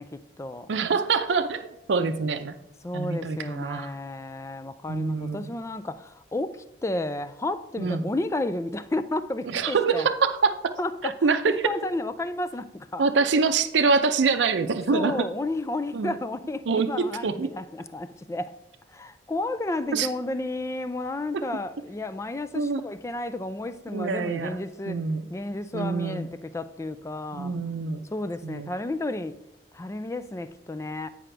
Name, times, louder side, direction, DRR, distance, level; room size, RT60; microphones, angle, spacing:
voice 1, 0.0-0.7 2.8-10.1 10.8-13.0 14.9-18.5 18.9-25.0 25.3-27.6 28.1-29.3 29.7-31.1, left 2 dB, 15° left, 0.3 m, -32 dB
voice 2, 0.7-2.6 2.9-3.9 4.9-5.5 7.8-8.1 9.5-10.7 11.0-11.7 13.0-15.3 15.9-16.2 16.7-17.5 19.9-20.1 22.5-22.8 23.9-25.3 25.7-26.3 27.3-28.1 28.4-28.7, right 4 dB, 85° right, 0.5 m, -25 dB
9.1 x 4.9 x 3.3 m
head